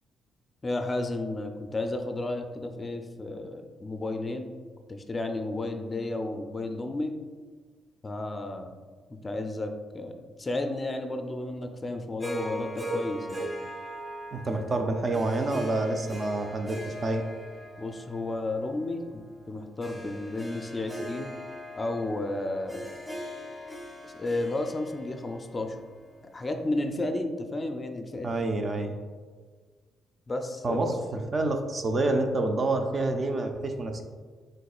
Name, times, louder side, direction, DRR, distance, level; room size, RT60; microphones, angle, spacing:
voice 1, 0.6-4.5 4.9-7.2 8.0-8.7 9.1-13.5 17.8-21.3 21.8-22.9 24.0-25.8 26.3-28.3 30.3-31.0, left 2 dB, 25° left, 5 dB, 0.4 m, -32 dB
Harp, 12.2-26.6, right 1 dB, 15° right, 0.9 m, -40 dB
voice 2, 14.3-17.3 28.2-28.9 30.6-34.0, right 2 dB, 40° right, 5 dB, 0.4 m, -28 dB
5.1 x 3.5 x 2.4 m, 1.5 s
cardioid pair, 90°, 0 cm